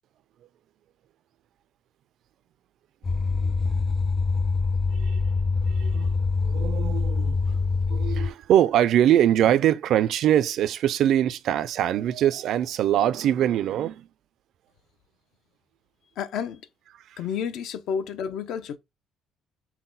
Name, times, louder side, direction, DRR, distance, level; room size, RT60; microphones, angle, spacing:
sound 1, 3.0-8.3, left 4 dB, 20° left, 0.3 m, -24 dB
voice 1, 5.6-6.1 6.4-7.6 7.9-14.1 17.1-17.2, right 11 dB, 60° right, 0.3 m, -23 dB
voice 2, 16.2-16.7 17.2-18.8, left 7 dB, 70° left, 0.6 m, -30 dB
5.8 x 2.2 x 3.9 m
cardioid pair, 125°, 0 cm